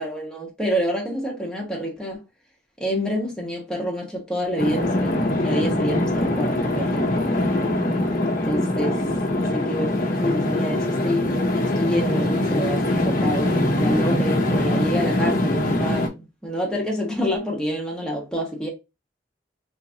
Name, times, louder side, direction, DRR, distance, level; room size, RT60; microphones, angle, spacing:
voice 1, 0.0-2.2 2.8-7.3 8.3-9.0 9.4-11.3 11.6-18.7, equal, 5° left, 1.2 m, -27 dB
sound 1, 4.6-16.1, left 1 dB, 50° left, 0.7 m, -22 dB
3.5 x 2.9 x 2.8 m
head